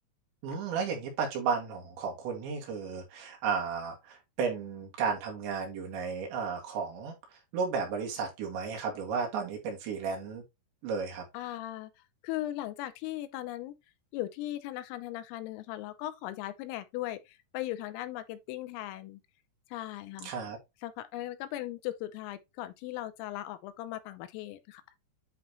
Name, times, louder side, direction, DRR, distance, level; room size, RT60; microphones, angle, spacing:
voice 1, 0.4-7.2 7.5-10.4 10.8-11.3 20.2-20.6, right 5 dB, 65° right, 4.2 m, -33 dB
voice 2, 11.3-11.9 12.2-13.8 14.1-19.2 19.7-20.3 20.8-24.8, left 14 dB, 85° left, 3.3 m, -38 dB
10.5 x 4.1 x 3.0 m
omnidirectional pair, 6.0 m